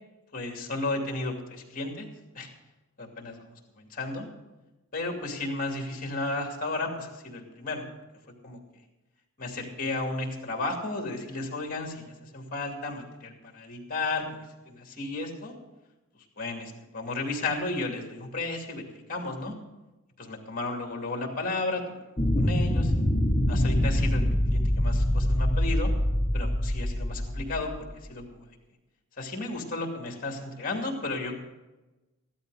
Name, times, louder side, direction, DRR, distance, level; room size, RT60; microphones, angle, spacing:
voice 1, 0.3-2.1 2.3-2.5 3.0-3.3 3.8-4.3 4.9-7.8 8.4-8.6 9.4-15.5 16.4-19.6 20.2-22.0 22.4-22.9 23.5-25.9 26.3-27.7 28.1-28.5 29.2-31.3, left 2 dB, 40° left, 2 dB, 2.5 m, -33 dB
sound 1, 22.2-27.9, left 1 dB, 15° left, 1.1 m, -25 dB
14.5 x 12.0 x 4.9 m, 1.1 s
head